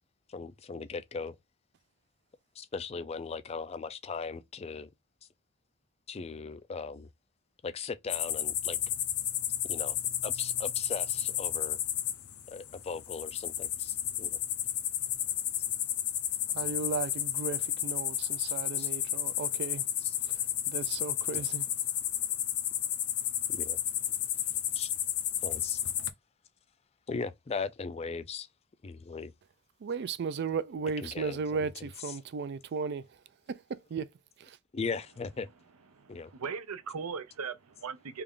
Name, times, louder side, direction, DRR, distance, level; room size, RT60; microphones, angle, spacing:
voice 1, 0.3-1.4 2.6-4.9 6.1-7.1 7.6-8.8 9.7-10.0 10.2-11.8 12.5-14.4 18.4-18.9 21.3-21.4 23.5-23.8 24.8-24.9 25.4-25.8 27.1-28.5 28.8-29.3 31.0-31.4 34.7-35.5 36.1-36.3, left 4 dB, 30° left, 0.3 m, -38 dB
sound 1, 8.1-26.1, left 11 dB, 75° left, 0.6 m, -32 dB
voice 2, 16.5-19.9 20.3-21.7 29.8-33.2 33.5-34.1 34.4-34.6, right 5 dB, 50° right, 0.3 m, -36 dB
voice 3, 35.9-38.2, right 5 dB, 80° right, 0.6 m, -39 dB
3.4 x 2.4 x 3.6 m
head